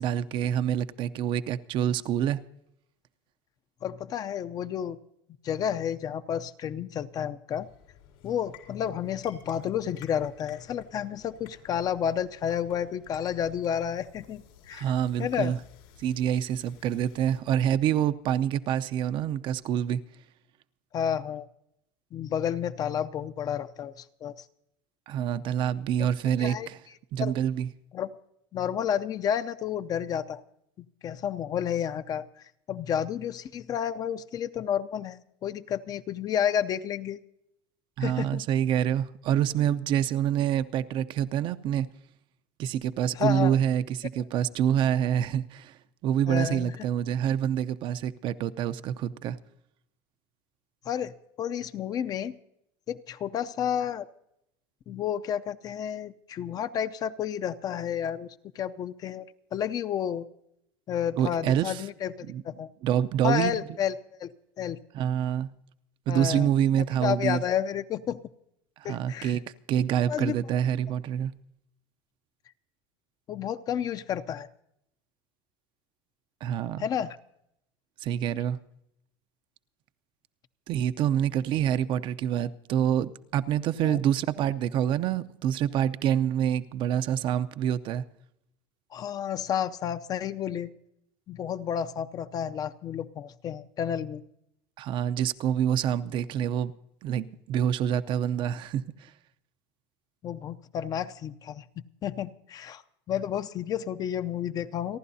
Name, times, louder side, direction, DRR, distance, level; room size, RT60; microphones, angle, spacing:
voice 1, 0.0-2.4 14.7-15.6 16.0-20.0 25.1-26.8 27.1-27.7 38.0-41.9 42.6-45.8 46.0-49.4 61.2-61.9 62.2-62.4 62.8-63.6 64.9-65.5 66.1-67.4 68.8-69.4 69.7-71.3 76.4-76.9 78.0-78.6 80.7-88.0 94.8-96.7 97.0-99.1, right 10 dB, 45° right, 12 dB, 0.6 m, -27 dB
voice 2, 3.8-5.0 5.4-7.7 8.2-14.9 15.2-15.5 20.9-21.5 22.1-24.3 26.4-26.7 27.2-27.3 27.9-28.1 28.5-30.4 31.0-32.3 32.7-37.2 38.0-38.4 43.1-43.5 46.3-46.8 50.8-52.4 52.9-54.1 54.9-60.3 60.9-62.7 63.2-63.9 64.2-64.3 64.6-64.8 66.1-66.5 67.0-68.2 68.8-69.4 70.1-70.4 73.3-74.5 76.8-77.2 83.8-84.0 88.9-90.7 91.3-94.2 100.2-102.8 103.1-105.0, left 9 dB, 35° left, 12 dB, 0.6 m, -31 dB
sound 1, 7.5-17.4, left 9 dB, 90° left, 4.4 m, -55 dB
30.0 x 11.5 x 2.7 m, 0.78 s
cardioid pair, 140°, 11 cm